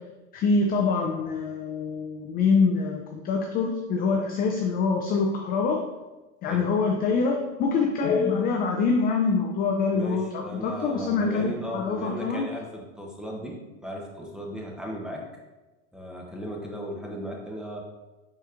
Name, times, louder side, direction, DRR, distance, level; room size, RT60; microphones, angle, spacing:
voice 1, 0.3-5.8 6.4-12.4, left 4 dB, 25° left, 2 dB, 0.3 m, -25 dB
voice 2, 9.9-15.3 15.9-17.8, equal, ahead, -1 dB, 0.7 m, -36 dB
4.9 x 4.1 x 2.5 m, 1.1 s
hypercardioid pair, 110°, 39 cm